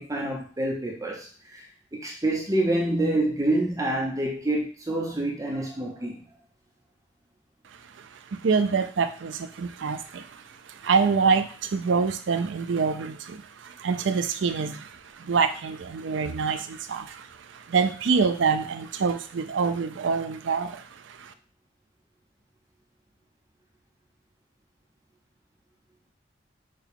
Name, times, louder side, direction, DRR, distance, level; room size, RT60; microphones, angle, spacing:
voice 1, 0.0-1.7 1.9-6.2, right 1 dB, 20° right, -1 dB, 0.7 m, -27 dB
voice 2, 8.0-21.3, right 5 dB, 90° right, 10 dB, 0.5 m, -26 dB
6.5 x 2.3 x 3.5 m, 0.40 s
head